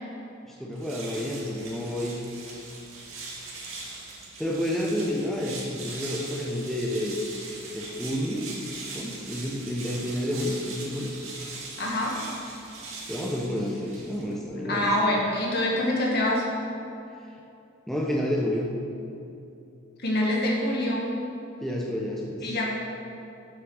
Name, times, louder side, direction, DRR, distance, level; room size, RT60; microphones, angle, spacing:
voice 1, 0.5-2.2 4.4-7.2 7.7-8.5 8.9-11.1 13.1-15.1 17.9-18.7 21.6-22.6, equal, ahead, -3 dB, 0.7 m, -30 dB
sound 1, 0.7-14.4, right 3 dB, 80° right, 1.9 m, -41 dB
voice 2, 11.8-12.2 14.7-16.4 20.0-21.1 22.4-22.7, left 1 dB, 50° left, -2 dB, 1.7 m, -25 dB
7.3 x 6.4 x 6.2 m, 2.7 s
head